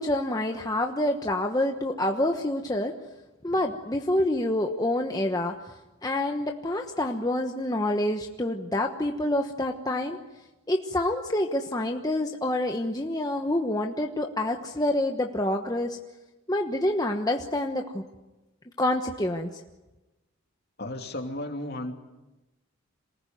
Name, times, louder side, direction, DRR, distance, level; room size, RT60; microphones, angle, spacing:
voice 1, 0.0-2.9 3.4-5.7 6.0-10.2 10.7-16.0 16.5-18.0 18.8-19.6, left 1 dB, 15° left, 3 dB, 1.2 m, -27 dB
voice 2, 20.8-21.9, left 1 dB, 45° left, 3 dB, 2.9 m, -34 dB
27.5 x 20.0 x 9.4 m, 1.1 s
head